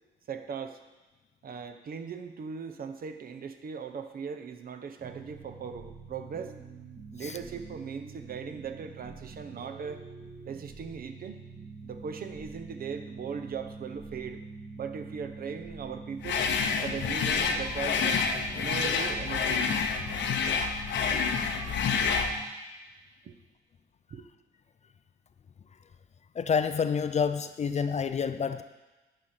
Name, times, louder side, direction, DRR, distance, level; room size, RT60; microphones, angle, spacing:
voice 1, 0.3-0.8 1.4-6.6 7.1-10.0 10.4-11.4 11.8-14.4 14.8-16.5 16.8-18.2 18.6-19.8 23.2-23.4 24.1-24.3, right 6 dB, 50° right, 7 dB, 0.8 m, -39 dB
sound 1, 5.0-22.5, right 3 dB, 20° right, 1.3 m, -45 dB
sound 2, 16.2-22.4, left 5 dB, 65° left, 0.8 m, -28 dB
voice 2, 26.4-28.6, left 6 dB, 35° left, 10 dB, 0.4 m, -28 dB
10.5 x 5.0 x 4.3 m, 1.1 s
cardioid pair, 90°, 20 cm